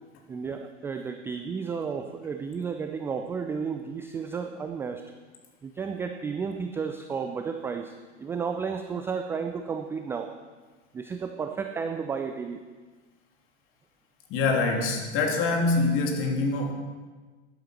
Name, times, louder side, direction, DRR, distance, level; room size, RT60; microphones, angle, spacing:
voice 1, 0.3-5.0 5.6-10.3 10.9-12.6, right 5 dB, 5° right, 6 dB, 0.3 m, -32 dB
voice 2, 14.3-16.7, left 3 dB, 35° left, 2 dB, 2.9 m, -25 dB
13.5 x 11.0 x 5.8 m, 1.3 s
figure-of-eight pair, 100°, 36 cm